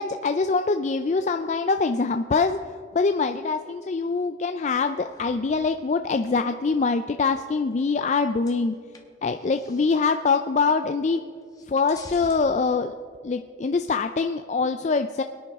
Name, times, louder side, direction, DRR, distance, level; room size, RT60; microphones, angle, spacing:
voice 1, 0.0-8.7 9.2-11.2 11.7-12.9 13.2-15.2, left 4 dB, 35° left, 7 dB, 0.4 m, -24 dB
sound 1, 5.0-6.6 7.3-8.2 8.4-10.1 10.7-10.8 11.1-12.4, left 2 dB, 20° left, 1.2 m, -49 dB
22.5 x 10.0 x 3.5 m, 2.2 s
head